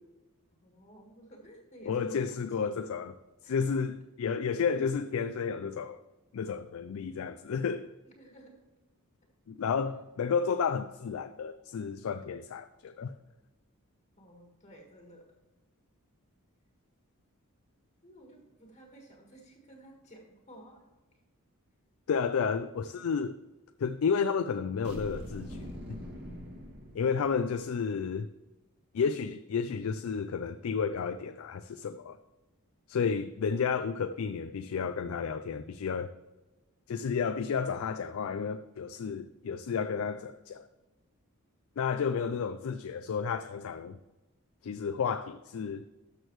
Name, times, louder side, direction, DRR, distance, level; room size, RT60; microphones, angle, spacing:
voice 1, 0.6-2.9 3.4-3.8 8.0-8.5 14.2-15.3 18.0-20.8 21.1-21.2, right 1 dB, 35° left, 1.6 m, -53 dB
voice 2, 1.9-3.1 3.4-6.0 6.3-7.9 9.5-13.1 22.1-23.4 23.8-25.6 26.9-28.3 28.9-32.2 32.9-36.1 36.9-40.7 41.8-44.0 44.6-45.8, left 6 dB, 65° left, 0.4 m, -31 dB
sound 1, 24.8-27.6, equal, 50° right, 2.1 m, -43 dB
12.5 x 6.4 x 3.1 m
head